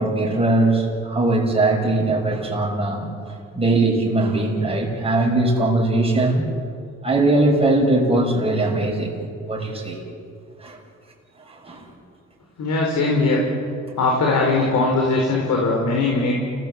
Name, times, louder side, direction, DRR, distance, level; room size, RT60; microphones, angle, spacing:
voice 1, 0.0-6.5 7.0-10.0 10.6-10.8 11.5-11.9, right 2 dB, 20° right, -2 dB, 6.7 m, -20 dB
voice 2, 12.6-13.4 14.0-16.3, left 3 dB, 70° left, -1 dB, 4.8 m, -20 dB
29.5 x 18.0 x 8.3 m, 2.4 s
cardioid pair, 90°, 30 cm